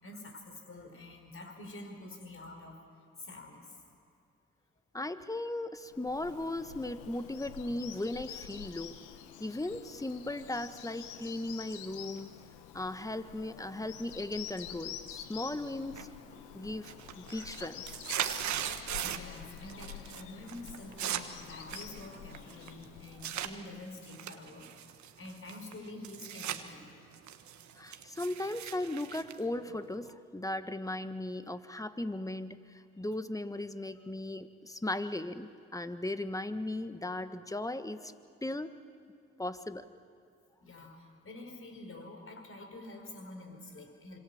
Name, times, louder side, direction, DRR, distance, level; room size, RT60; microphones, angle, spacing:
voice 1, 0.0-2.8 3.2-3.8 19.0-24.7 25.2-27.0 40.6-44.2, left 2 dB, 45° left, 4 dB, 5.2 m, -47 dB
voice 2, 4.9-8.9 9.4-12.3 12.7-16.1 16.5-17.8 27.8-38.1 38.4-38.7 39.4-39.9, left 1 dB, 10° left, 10 dB, 1.5 m, -37 dB
Bird vocalization bird call bird song, 5.8-23.8, left 10 dB, 85° left, 1.2 m, -48 dB
sound 1, 16.0-16.4 16.7-19.4 19.7-20.2 20.5-23.5 24.0-26.6 27.0-30.1, right 10 dB, 70° right, 1.4 m, -39 dB
26.0 x 24.5 x 7.2 m, 2.6 s
hypercardioid pair, 45°, 30 cm